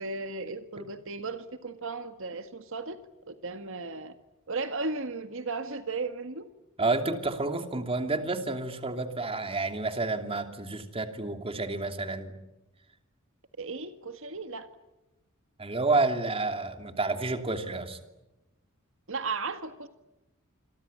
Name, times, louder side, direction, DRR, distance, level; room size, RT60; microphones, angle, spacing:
voice 1, 0.0-3.0 3.3-4.2 4.5-6.5 13.6-14.7 19.1-19.9, right 3 dB, 65° right, 8 dB, 1.8 m, -35 dB
voice 2, 6.8-12.4 15.6-18.0, right 3 dB, 25° right, 7 dB, 2.8 m, -30 dB
28.0 x 23.5 x 8.7 m, 0.98 s
head